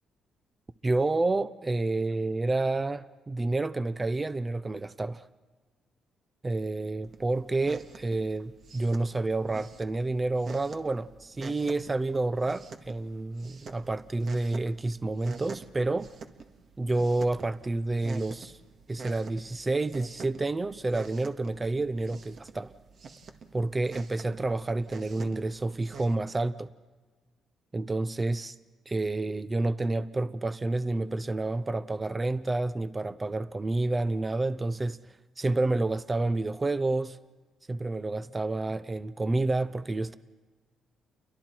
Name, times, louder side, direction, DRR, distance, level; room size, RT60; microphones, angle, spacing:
voice 1, 0.8-5.3 6.4-16.1 16.8-18.6 18.9-22.7 23.5-26.7 27.7-28.5 28.9-35.0 35.4-37.2 37.7-40.2, right 2 dB, 20° right, 0.7 m, -29 dB
sound 1, 7.0-26.1, right 4 dB, 55° right, 1.7 m, -47 dB
29.5 x 23.0 x 4.5 m
cardioid pair, 90°, 0 cm